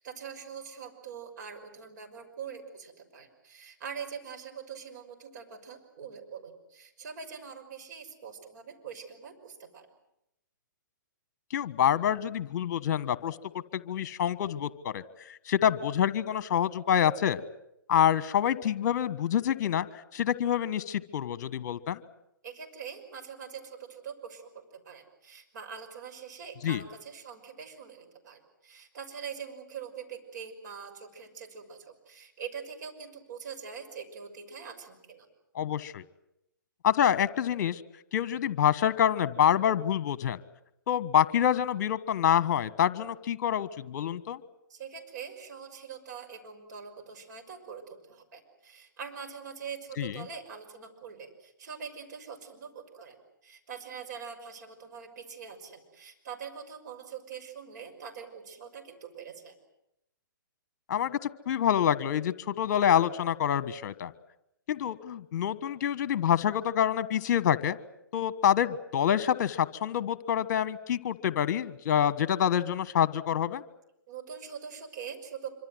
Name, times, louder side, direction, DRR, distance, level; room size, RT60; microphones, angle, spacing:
voice 1, 0.0-9.9 22.4-24.5 24.8-35.3 44.7-59.6 74.1-75.5, right 6 dB, 55° right, 5 dB, 5.9 m, -43 dB
voice 2, 11.5-13.4 13.7-17.4 17.9-19.9 20.1-22.0 26.6-26.8 35.5-36.0 36.8-37.8 38.1-40.4 40.9-44.4 50.0-50.2 60.9-64.1 64.7-67.8 68.1-73.6, left 9 dB, 50° left, 16 dB, 1.4 m, -27 dB
25.5 x 25.0 x 7.9 m, 0.82 s
hypercardioid pair, 135°, 11 cm